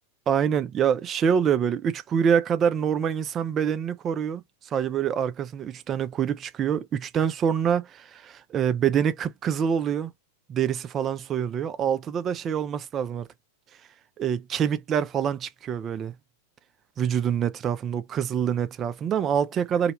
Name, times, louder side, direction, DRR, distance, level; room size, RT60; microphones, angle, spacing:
voice 1, 0.3-4.4 4.7-10.1 10.5-13.3 14.2-16.2 17.0-19.9, right 8 dB, 25° right, 0.3 m, -25 dB
2.1 x 2.1 x 3.0 m
figure-of-eight pair, 90°, 0 cm